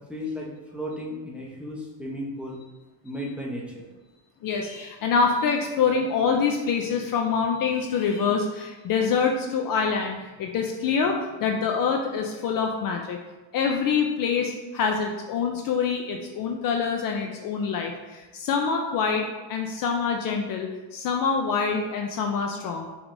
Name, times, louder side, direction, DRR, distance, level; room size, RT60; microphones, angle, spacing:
voice 1, 0.1-2.6 3.0-3.9, left 1 dB, 5° right, -4 dB, 0.9 m, -34 dB
voice 2, 4.4-13.2 13.5-22.9, left 5 dB, 50° left, 2 dB, 0.5 m, -25 dB
5.9 x 3.4 x 2.6 m, 1.2 s
cardioid pair, 120°, 45 cm